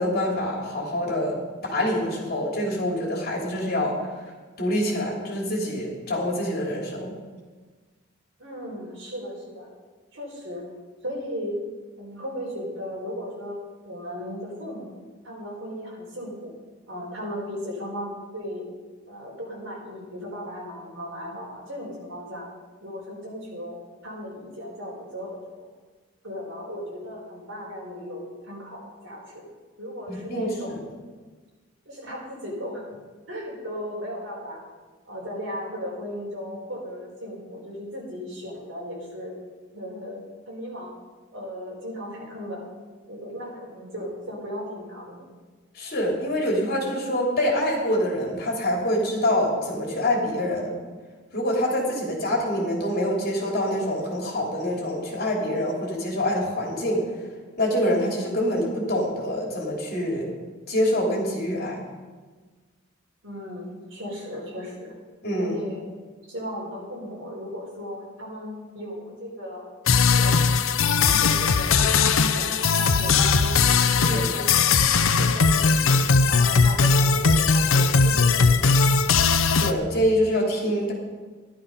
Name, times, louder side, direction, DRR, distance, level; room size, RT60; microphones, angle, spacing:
voice 1, 0.0-1.4 1.6-4.0 4.6-7.1 30.1-30.8 45.7-50.8 51.3-57.1 57.6-60.3 60.7-61.8 65.2-65.6 74.1-74.3 79.6-80.9, equal, 50° left, -1 dB, 3.1 m, -25 dB
voice 2, 8.4-9.7 10.1-10.7 11.0-11.6 12.0-13.6 13.8-14.9 15.2-16.5 16.9-18.6 19.1-22.5 22.8-23.8 24.0-25.4 26.2-29.4 29.8-30.7 31.8-32.8 33.3-34.6 35.1-39.3 39.7-40.9 41.3-42.6 43.1-45.2 63.2-64.9 65.4-65.8 66.3-69.6 70.0-70.4 71.0-74.6 75.2-76.0 76.3-78.8, equal, 65° right, -3 dB, 4.7 m, -36 dB
sound 1, 69.9-79.7, left 5 dB, 80° left, 0.7 m, -19 dB
13.5 x 11.5 x 5.4 m, 1.4 s
head